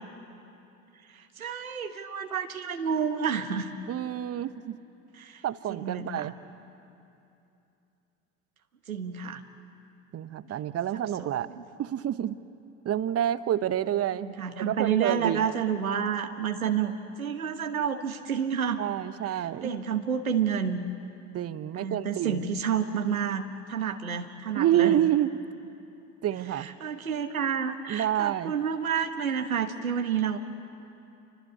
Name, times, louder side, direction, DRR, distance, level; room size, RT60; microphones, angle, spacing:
voice 1, 1.1-3.7 5.1-5.4 5.7-6.3 8.9-9.4 10.9-11.3 11.5-11.6 14.2-18.8 19.3-20.9 21.7-25.0 26.5-30.4, right 7 dB, 85° right, 6 dB, 1.3 m, -30 dB
voice 2, 3.9-4.8 5.4-6.3 10.1-11.5 11.8-12.4 12.8-15.5 18.8-19.8 21.3-22.5 24.5-25.3 26.2-26.7 27.9-28.5, right 11 dB, 35° right, 14 dB, 1.0 m, -28 dB
28.5 x 24.0 x 8.5 m, 2.7 s
figure-of-eight pair, 65°, 41 cm